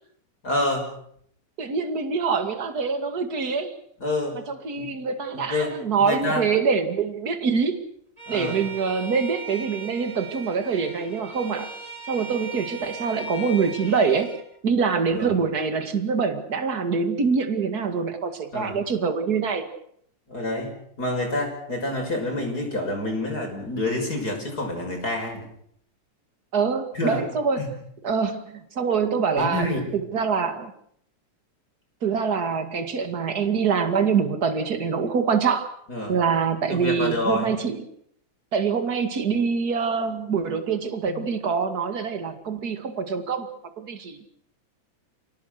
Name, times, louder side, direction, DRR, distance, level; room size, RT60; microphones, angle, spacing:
voice 1, 0.4-0.9 4.0-4.4 4.8-4.9 5.3-6.4 8.3-8.6 15.1-15.4 18.5-18.8 20.3-20.7 21.0-25.4 26.9-27.2 27.6-27.7 29.4-29.9 35.9-36.2 36.6-37.5 41.0-41.3, left 1 dB, 30° left, 2 dB, 6.6 m, -27 dB
voice 2, 1.6-3.7 4.3-7.8 8.3-11.7 12.1-19.7 26.5-27.7 28.0-29.7 29.9-30.7 32.0-35.7 36.1-37.8 38.5-43.5 43.8-44.3, right 5 dB, 35° right, 7 dB, 2.3 m, -25 dB
Bowed string instrument, 8.2-14.4, right 2 dB, 10° right, 3.1 m, -38 dB
30.0 x 18.0 x 6.7 m, 0.68 s
omnidirectional pair, 3.4 m